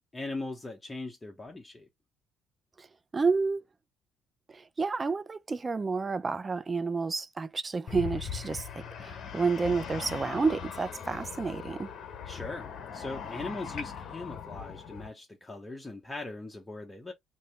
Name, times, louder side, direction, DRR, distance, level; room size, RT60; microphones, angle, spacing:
voice 1, 0.1-1.9 12.3-17.1, left 2 dB, 20° left, 0.8 m, -40 dB
voice 2, 3.1-3.6 4.5-8.7 9.0-11.9, right 4 dB, 30° right, 0.5 m, -30 dB
sound 1, 7.9-15.1, left 7 dB, 55° left, 0.9 m, -40 dB
2.9 x 2.6 x 3.2 m
supercardioid pair, 70°, 0 cm